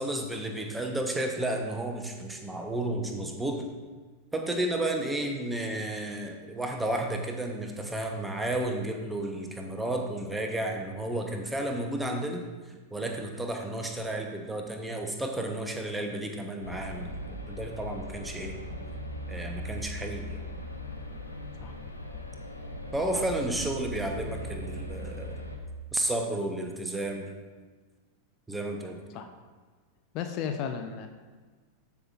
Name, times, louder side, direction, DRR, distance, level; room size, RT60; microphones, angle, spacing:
voice 1, 0.0-3.6 4.3-12.4 12.9-17.2 17.5-18.6 19.3-20.4 22.9-25.4 25.9-27.3 28.5-29.0, right 1 dB, 5° right, 3 dB, 1.0 m, -32 dB
sound 1, 16.6-25.6, equal, 85° left, 0.9 m, -39 dB
voice 2, 30.1-31.1, left 7 dB, 40° left, 6 dB, 0.6 m, -34 dB
13.0 x 5.6 x 2.5 m, 1.4 s
figure-of-eight pair, 90°, 0 cm